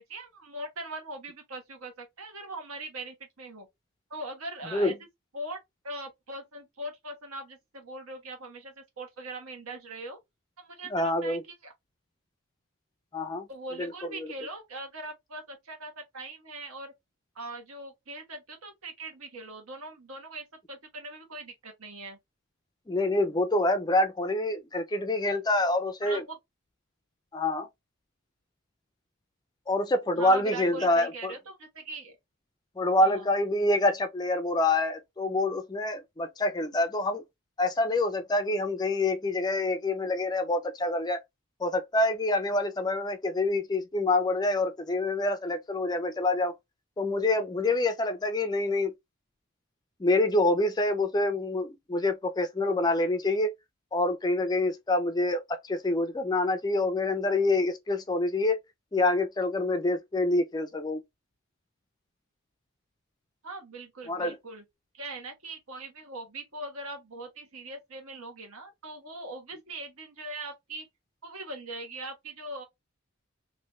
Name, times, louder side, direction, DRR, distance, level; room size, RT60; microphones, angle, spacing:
voice 1, 0.0-3.7 4.1-5.0 5.3-5.6 5.8-10.2 10.6-11.7 13.5-16.9 17.3-22.2 26.0-26.4 30.2-32.2 33.0-33.3 63.4-64.6 64.9-70.9 71.2-72.6, right 2 dB, 80° right, 1.3 m, -41 dB
voice 2, 10.9-11.4 13.1-13.5 13.8-13.9 22.9-26.2 27.3-27.7 29.7-31.3 32.8-37.2 37.6-41.2 41.6-46.5 47.0-48.9 50.0-53.5 53.9-58.6 58.9-61.0 64.1-64.3, left 2 dB, 20° left, 0.3 m, -26 dB
3.1 x 2.6 x 3.0 m
head